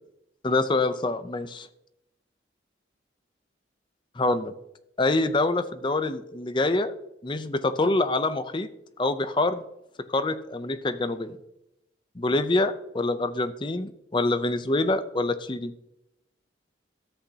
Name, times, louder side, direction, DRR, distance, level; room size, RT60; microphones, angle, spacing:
voice 1, 0.4-1.7 4.2-4.5 5.0-6.9 7.2-8.7 9.0-9.6 10.1-11.4 12.2-15.7, left 2 dB, 25° left, 11 dB, 0.5 m, -25 dB
13.5 x 8.3 x 2.8 m, 0.82 s
head